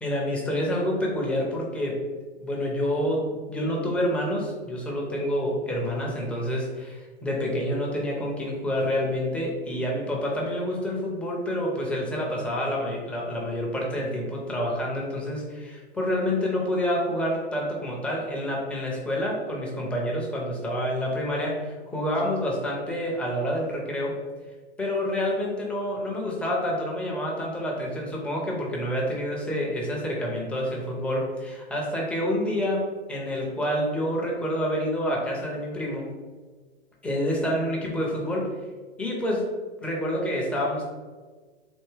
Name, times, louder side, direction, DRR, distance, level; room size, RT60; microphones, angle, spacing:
voice 1, 0.0-2.0 2.4-24.2 24.8-36.1 37.0-38.5 39.0-39.5 39.8-40.8, equal, 5° left, -3 dB, 0.4 m, -28 dB
3.5 x 2.6 x 3.1 m, 1.4 s
hypercardioid pair, 130°, 33 cm